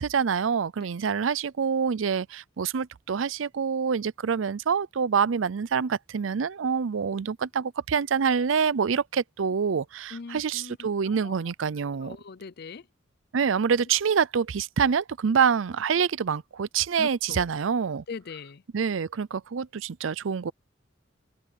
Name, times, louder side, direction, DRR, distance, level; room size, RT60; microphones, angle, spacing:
voice 1, 0.0-12.2 13.3-18.0 18.7-20.5, right 6 dB, 85° right, 0.5 m, -26 dB
voice 2, 10.1-11.3 12.0-12.9 17.0-17.4 18.1-18.6, left 4 dB, 55° left, 0.5 m, -41 dB
open air
head